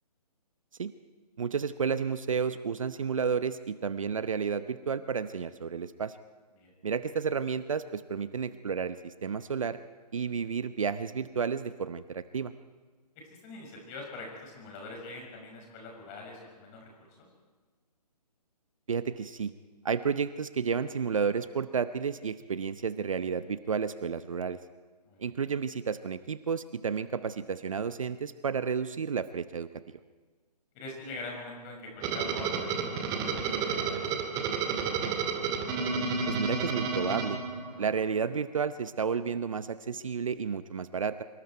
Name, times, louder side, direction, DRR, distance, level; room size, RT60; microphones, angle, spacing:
voice 1, 1.4-6.2 6.8-9.8 10.1-12.5 18.9-19.5 19.8-24.6 25.2-29.7 36.3-37.4 37.8-41.2, right 6 dB, 55° right, 13 dB, 0.8 m, -31 dB
voice 2, 13.4-16.9 17.2-17.3 25.1-25.3 30.7-35.2 37.7-37.9, left 2 dB, 20° left, 0 dB, 6.2 m, -44 dB
sound 1, 32.0-38.0, right 5 dB, 15° right, 2.1 m, -31 dB
25.0 x 23.0 x 4.6 m, 1.4 s
figure-of-eight pair, 140°, 21 cm